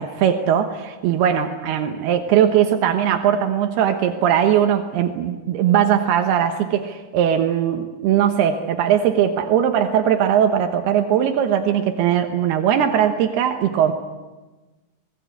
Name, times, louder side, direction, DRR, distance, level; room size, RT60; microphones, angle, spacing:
voice 1, 0.0-13.9, right 9 dB, 80° right, 5 dB, 3.2 m, -19 dB
26.5 x 19.5 x 8.3 m, 1.2 s
omnidirectional pair, 4.5 m